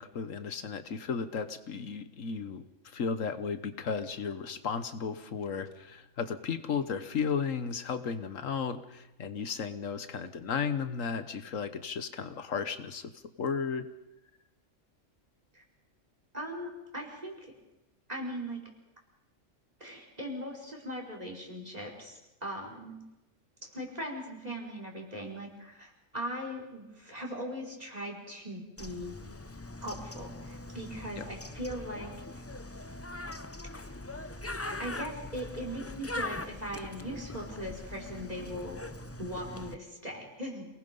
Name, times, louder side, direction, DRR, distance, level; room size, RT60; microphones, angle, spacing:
voice 1, 0.0-13.1 13.4-13.8 31.2-31.3, left 6 dB, 80° left, 11 dB, 1.5 m, -34 dB
voice 2, 16.3-17.5 18.1-18.6 19.8-23.0 23.6-29.2 29.8-32.1 34.8-38.8 39.2-40.7, equal, 30° right, 0 dB, 5.1 m, -39 dB
Bird, 28.8-39.8, left 2 dB, 15° left, 0.5 m, -41 dB
28.0 x 19.5 x 5.4 m, 0.94 s
omnidirectional pair, 1.3 m